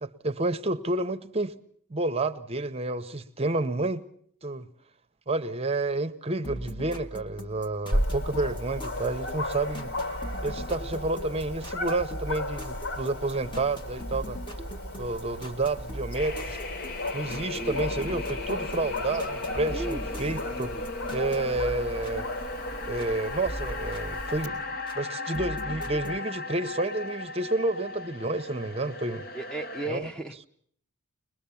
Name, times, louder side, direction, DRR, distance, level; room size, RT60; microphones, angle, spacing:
voice 1, 0.0-1.6 1.9-4.0 4.4-4.7 5.3-9.9 10.4-14.4 15.0-16.6 17.1-20.7 21.1-22.3 22.8-24.6 24.9-29.2 29.9-30.1, right 2 dB, 30° right, 0.8 m, -30 dB
sound 1, 6.4-23.1 23.4-25.0 25.3-26.2, equal, 20° left, 1.8 m, -41 dB
Dog, 7.9-24.5, left 1 dB, 90° left, 3.1 m, -35 dB
sound 2, 16.1-29.9, left 3 dB, 45° left, 1.0 m, -37 dB
voice 2, 17.5-18.3 19.7-20.8 29.3-30.4, right 2 dB, 5° left, 0.8 m, -36 dB
22.5 x 21.5 x 7.0 m
head